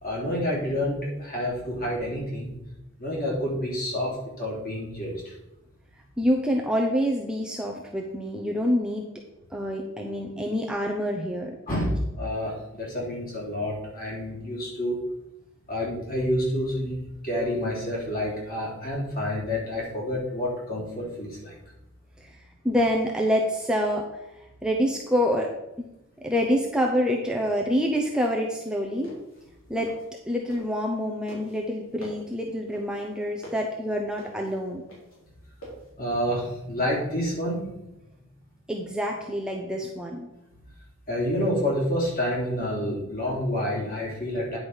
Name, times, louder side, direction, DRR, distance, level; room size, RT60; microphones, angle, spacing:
voice 1, 0.0-2.6 3.0-5.3 11.7-15.0 15.7-17.0 17.2-21.5 36.0-37.7 41.1-44.6, left 1 dB, 45° left, -4 dB, 3.5 m, -28 dB
voice 2, 6.2-9.1 9.5-11.5 22.2-22.3 22.6-24.1 24.6-25.5 26.2-29.1 29.7-29.9 30.3-34.8 38.7-40.3, equal, 5° right, 0 dB, 0.7 m, -26 dB
sound 1, 28.8-31.0 31.3-35.9, right 1 dB, 70° left, 3.8 m, -45 dB
9.8 x 5.1 x 5.6 m, 0.92 s
head